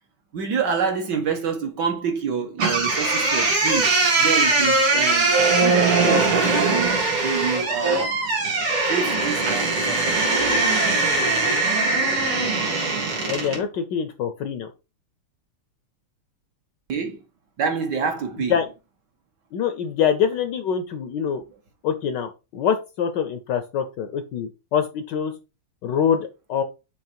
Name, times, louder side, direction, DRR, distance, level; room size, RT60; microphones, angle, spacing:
voice 1, 0.3-8.2 8.9-10.8 16.9-17.2 17.6-18.6, right 6 dB, 60° right, 1.5 m, -27 dB
sound 1, 2.6-13.6, right 3 dB, 80° right, 2.8 m, -21 dB
voice 2, 13.3-14.7 18.5-18.7 19.5-21.4 21.8-25.3 25.8-26.6, left 7 dB, 70° left, 1.1 m, -25 dB
6.6 x 3.2 x 4.4 m
omnidirectional pair, 2.4 m